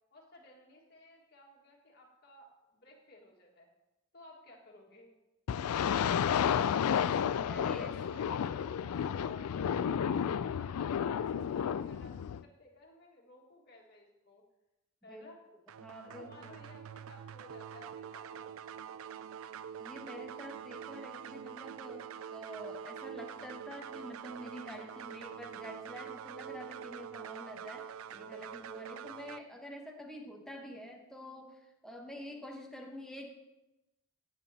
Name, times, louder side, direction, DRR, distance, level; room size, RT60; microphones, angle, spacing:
voice 1, 0.1-3.7 4.1-5.1 7.5-10.7 11.0-14.4 15.0-15.4 16.0-18.6 18.8-19.1 32.1-32.4, left 1 dB, 45° left, -1 dB, 1.8 m, -57 dB
sound 1, 5.5-12.4, left 8 dB, 85° left, 0.3 m, -31 dB
voice 2, 7.5-8.0 15.1-15.2 15.8-16.5 19.8-33.3, equal, ahead, 1 dB, 0.9 m, -47 dB
sound 2, 15.7-29.4, right 8 dB, 70° right, 0.3 m, -45 dB
16.0 x 7.4 x 2.8 m, 0.96 s
head